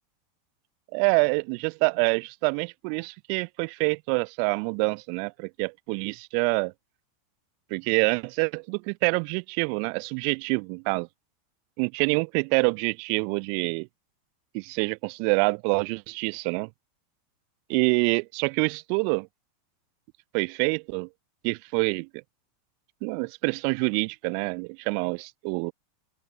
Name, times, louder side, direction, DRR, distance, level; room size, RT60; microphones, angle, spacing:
voice 1, 0.9-6.7 7.7-11.1 11.8-13.9 14.5-16.7 17.7-19.3 20.3-21.1 21.4-22.1 23.0-25.7, right 40 dB or more, 40° right, 0.4 m, -26 dB
open air
supercardioid pair, 170°, 0 cm